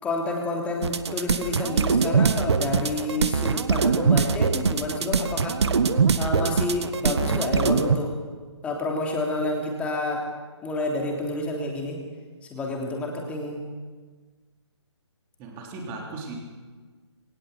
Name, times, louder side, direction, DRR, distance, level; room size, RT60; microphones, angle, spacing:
voice 1, 0.0-5.6 6.1-8.1 8.6-10.2 10.6-12.0 12.5-13.6, left 2 dB, 10° left, 0 dB, 3.2 m, -29 dB
sound 1, 0.8-8.0, right 5 dB, 60° right, 1.5 m, -22 dB
voice 2, 15.4-16.4, right 3 dB, 20° right, 1 dB, 3.7 m, -37 dB
22.0 x 18.5 x 8.2 m, 1.4 s
hypercardioid pair, 160°, 16 cm